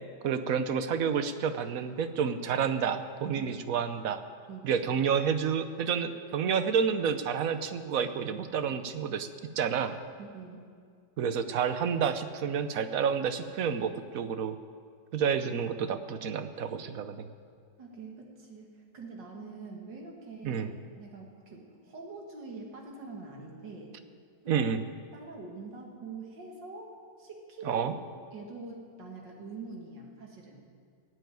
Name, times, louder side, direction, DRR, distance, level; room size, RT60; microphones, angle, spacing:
voice 1, 0.2-4.2 4.6-9.3 9.6-10.0 11.2-14.6 15.1-17.3 20.4-20.7 24.5-24.8 27.6-27.9, right 7 dB, 60° right, 10 dB, 1.1 m, -29 dB
voice 2, 10.2-10.6 17.8-20.7 21.0-23.9 24.4-24.7 25.1-26.9 27.2-27.8 28.3-30.6, right 3 dB, 80° right, 0 dB, 2.7 m, -44 dB
17.5 x 8.0 x 9.3 m, 2.2 s
omnidirectional pair, 1.9 m